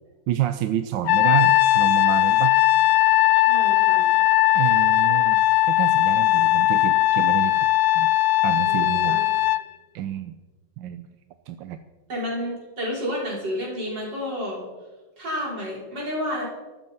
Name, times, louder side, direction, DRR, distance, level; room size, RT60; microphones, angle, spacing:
voice 1, 0.3-2.6 4.5-7.6 7.9-8.1 8.4-9.2 9.9-10.4 10.8-11.0 11.5-11.8, right 11 dB, 75° right, 9 dB, 1.3 m, -28 dB
Trumpet, 1.0-9.6, left 16 dB, 85° left, 0.8 m, -19 dB
voice 2, 3.4-4.1 8.7-9.2 12.1-14.6 15.2-16.5, left 1 dB, 60° right, -4 dB, 6.1 m, -30 dB
14.5 x 13.0 x 5.6 m, 1.2 s
omnidirectional pair, 2.2 m